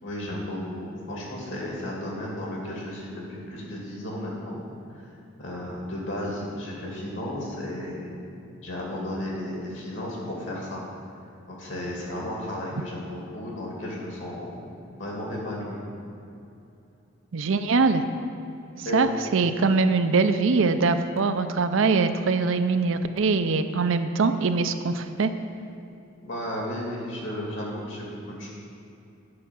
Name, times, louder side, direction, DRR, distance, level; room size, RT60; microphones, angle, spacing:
voice 1, 0.0-4.6 5.4-8.1 8.6-10.8 11.5-14.5 15.0-15.8 18.8-19.1 26.2-28.5, left 1 dB, 65° left, -3 dB, 2.6 m, -33 dB
voice 2, 17.3-18.0 18.9-25.3, right 4 dB, 65° right, 9 dB, 0.5 m, -22 dB
9.6 x 5.6 x 7.0 m, 2.8 s
head